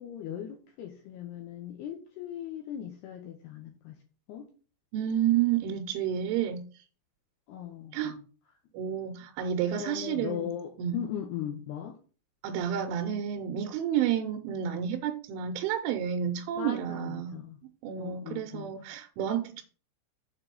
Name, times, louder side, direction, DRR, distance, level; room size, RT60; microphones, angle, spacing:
voice 1, 0.0-4.0 4.3-4.5 7.5-8.2 9.8-12.0 16.6-17.6 18.0-18.9, left 10 dB, 80° left, 3 dB, 2.4 m, -39 dB
voice 2, 4.9-6.6 7.9-8.2 8.7-10.5 10.8-11.0 12.4-17.4 17.8-19.6, right 9 dB, 80° right, 4 dB, 3.0 m, -30 dB
7.4 x 4.0 x 6.8 m, 0.38 s
omnidirectional pair, 5.8 m